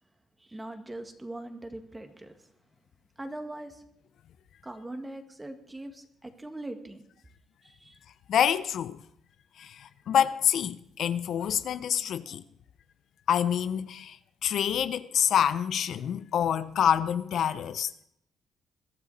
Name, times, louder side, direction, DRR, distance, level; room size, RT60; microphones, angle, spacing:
voice 1, 0.4-2.3 3.2-3.8 4.6-7.0 7.6-8.0, right 1 dB, 15° right, 2.2 m, -41 dB
voice 2, 8.3-9.0 9.6-12.4 13.3-14.2 14.4-18.0, left 9 dB, 70° left, 0.7 m, -27 dB
21.5 x 12.5 x 4.3 m
cardioid pair, 90°, 0 cm